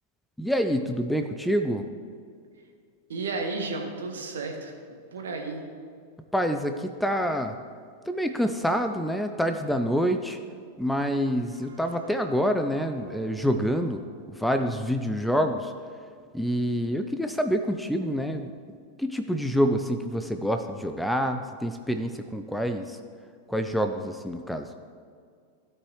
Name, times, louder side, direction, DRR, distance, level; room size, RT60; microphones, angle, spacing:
voice 1, 0.4-1.8 6.3-7.6 8.0-10.4 10.8-14.0 14.3-15.7 16.3-18.5 19.0-23.0 23.5-24.7, equal, ahead, 7 dB, 0.4 m, -27 dB
voice 2, 3.1-4.7 5.1-5.6, right 3 dB, 65° right, 3 dB, 1.3 m, -32 dB
sound 1, 11.3-16.5, right 2 dB, 80° right, 1.1 m, -50 dB
15.5 x 5.4 x 3.1 m, 2.2 s
figure-of-eight pair, 90°, 0 cm